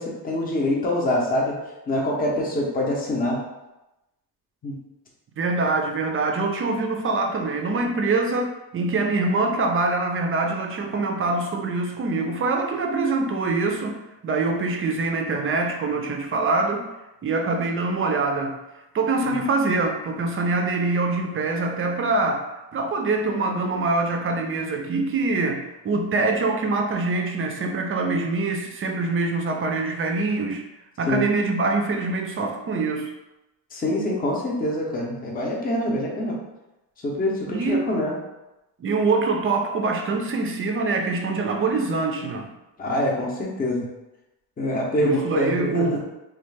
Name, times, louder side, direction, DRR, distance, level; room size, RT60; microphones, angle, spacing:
voice 1, 0.0-1.6 1.9-3.4 4.6-4.8 19.3-19.4 31.1-31.2 33.7-36.4 37.0-38.2 42.8-43.9 44.6-46.0, left 1 dB, 20° left, -2 dB, 0.6 m, -25 dB
voice 2, 5.4-14.0 14.2-16.9 17.2-18.6 18.9-30.6 31.0-33.1 37.5-37.9 38.8-42.5 45.0-46.0, right 3 dB, 35° right, 3 dB, 0.4 m, -24 dB
3.1 x 2.3 x 3.2 m, 0.97 s
cardioid pair, 130°, 39 cm